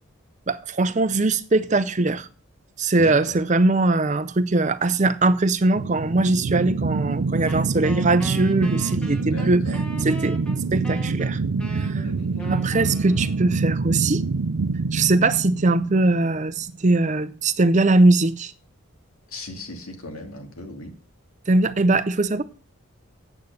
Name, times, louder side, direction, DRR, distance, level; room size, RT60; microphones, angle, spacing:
voice 1, 0.5-2.3 2.8-9.6 10.0-10.4 10.7-11.4 11.7-12.0 12.5-14.2 14.9-18.5 21.5-22.4, right 2 dB, 35° right, 0.6 m, -21 dB
voice 2, 2.9-3.3 9.2-9.8 12.0-12.5 19.3-20.9, left 2 dB, 80° left, 2.4 m, -37 dB
sound 1, 5.7-16.7, right 4 dB, 90° right, 0.5 m, -26 dB
Wind instrument woodwind instrument, 7.5-13.8, right 1 dB, 5° left, 1.3 m, -40 dB
8.8 x 8.3 x 6.6 m
head